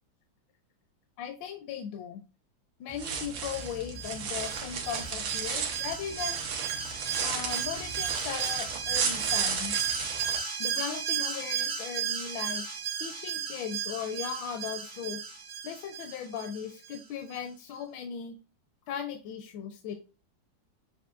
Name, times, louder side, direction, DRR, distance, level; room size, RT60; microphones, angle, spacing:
voice 1, 1.2-2.2 2.8-6.5 7.2-9.9 10.6-12.6 13.0-15.2 15.6-18.4 18.9-19.9, left 8 dB, 85° left, 6 dB, 1.3 m, -38 dB
sound 1, 2.9-10.4, right 6 dB, 85° right, 1.6 m, -34 dB
Alarm, 3.5-17.0 17.3-17.4, right 8 dB, 45° right, 0.6 m, -34 dB
6.3 x 2.6 x 2.4 m, 0.33 s
omnidirectional pair, 2.0 m